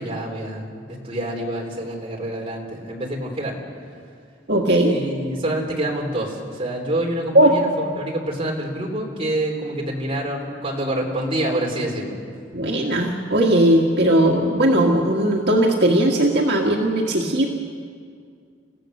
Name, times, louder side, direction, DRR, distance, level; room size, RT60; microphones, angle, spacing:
voice 1, 0.0-3.5 4.8-12.2, right 1 dB, 30° right, -1 dB, 3.6 m, -27 dB
voice 2, 4.5-5.0 7.3-7.6 12.5-17.5, right 1 dB, 65° right, -1 dB, 1.8 m, -18 dB
29.5 x 15.5 x 6.6 m, 2.2 s
head